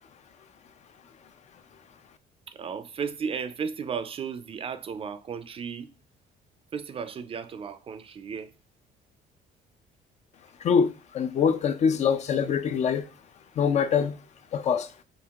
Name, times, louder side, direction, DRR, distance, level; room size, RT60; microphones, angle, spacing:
voice 1, 2.5-5.9 6.7-8.5, right 6 dB, 35° right, 0.4 m, -34 dB
voice 2, 10.6-13.1 13.6-14.2 14.5-14.9, left 6 dB, 45° left, 0.4 m, -24 dB
5.2 x 2.7 x 2.3 m
cardioid pair, 110°, 17 cm